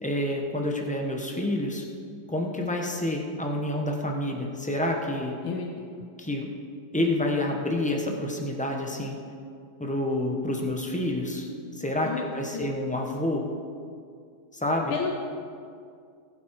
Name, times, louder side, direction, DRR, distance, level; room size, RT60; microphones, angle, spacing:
voice 1, 0.0-1.8 2.3-5.4 6.2-6.5 6.9-9.2 9.8-13.4 14.5-15.0, left 1 dB, 10° left, 1 dB, 0.3 m, -28 dB
voice 2, 14.9-15.3, left 5 dB, 75° left, 2 dB, 1.6 m, -31 dB
19.5 x 7.2 x 4.7 m, 2.3 s
omnidirectional pair, 2.2 m